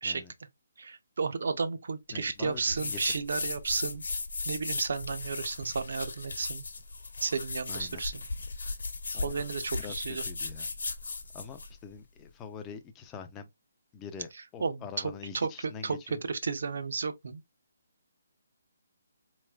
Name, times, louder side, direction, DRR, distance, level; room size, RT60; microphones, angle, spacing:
voice 1, 0.8-4.0 4.5-6.6 7.2-8.1 9.2-10.2 14.6-15.5 15.8-17.4, right 4 dB, 55° right, 0.6 m, -33 dB
voice 2, 2.1-3.0 7.7-8.0 9.1-9.3 9.8-10.7 11.3-13.5 13.9-16.2, left 6 dB, 10° left, 0.3 m, -44 dB
sound 1, 2.7-11.7, left 3 dB, 80° left, 0.9 m, -37 dB
4.0 x 3.1 x 2.2 m
hypercardioid pair, 175°, 0 cm